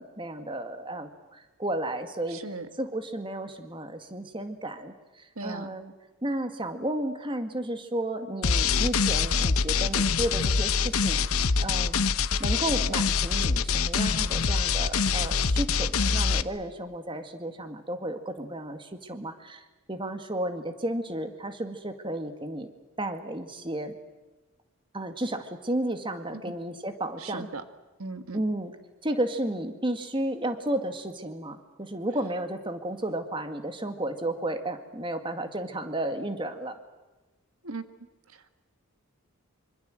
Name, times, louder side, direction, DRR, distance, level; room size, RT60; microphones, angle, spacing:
voice 1, 0.0-2.4 2.8-5.9 6.2-11.2 11.6-12.1 12.4-19.6 19.9-22.7 23.0-24.0 24.9-27.5 28.3-28.7 29.0-36.8, right 1 dB, 20° right, 8 dB, 2.1 m, -33 dB
voice 2, 2.3-2.7 5.3-5.7 26.3-26.4 27.2-27.6 28.0-28.4 37.6-37.8 38.3-38.5, right 3 dB, 70° right, 10 dB, 1.6 m, -38 dB
sound 1, 8.4-16.4, left 5 dB, 75° left, 0.9 m, -25 dB
26.0 x 25.5 x 7.8 m, 1.1 s
head